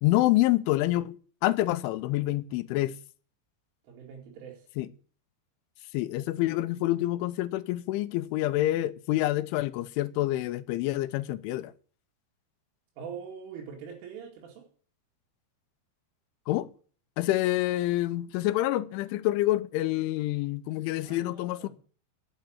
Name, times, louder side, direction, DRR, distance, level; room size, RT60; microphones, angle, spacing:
voice 1, 0.0-1.2 1.4-2.9 4.8-4.9 5.9-11.7 16.5-16.7 17.2-21.7, left 16 dB, 85° left, 3.2 m, -27 dB
voice 2, 3.8-4.7 13.0-14.7 21.0-21.7, right 7 dB, 90° right, 4.9 m, -43 dB
10.5 x 8.9 x 8.8 m
omnidirectional pair, 5.4 m